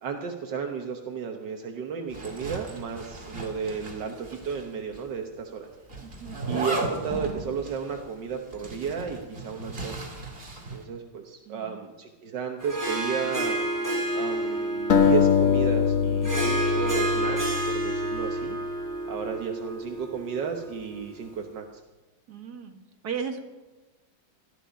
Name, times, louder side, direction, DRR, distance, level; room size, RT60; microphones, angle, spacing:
voice 1, 0.0-5.7 6.4-10.0 10.7-13.6 14.1-18.6 19.1-21.7, right 6 dB, 75° right, 3 dB, 1.8 m, -33 dB
Zipper (clothing), 2.1-4.7 4.9-5.0 5.9-10.8, right 2 dB, 30° right, 2.6 m, -36 dB
voice 2, 6.0-6.4 11.5-11.8 22.3-22.7 23.0-23.4, right 6 dB, 60° right, 5 dB, 2.1 m, -35 dB
Harp, 12.6-21.2, right 1 dB, 10° left, 3.7 m, -30 dB
sound 1, 14.9-18.1, left 7 dB, 50° left, 1.4 m, -23 dB
18.5 x 13.0 x 5.2 m, 1.2 s
omnidirectional pair, 1.9 m